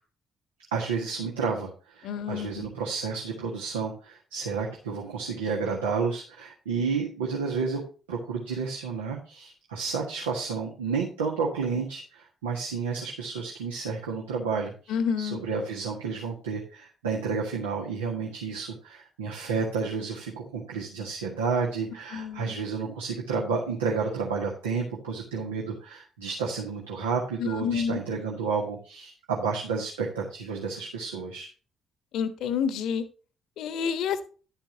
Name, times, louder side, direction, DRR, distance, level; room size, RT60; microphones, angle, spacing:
voice 1, 0.7-7.8 8.1-31.5, right 5 dB, 75° right, -1 dB, 1.6 m, -31 dB
voice 2, 2.0-2.7 14.9-15.4 22.1-22.6 27.4-28.0 32.1-33.0 33.6-34.2, left 7 dB, 60° left, 12 dB, 1.1 m, -29 dB
11.5 x 8.9 x 2.8 m, 0.36 s
figure-of-eight pair, 45°, 0 cm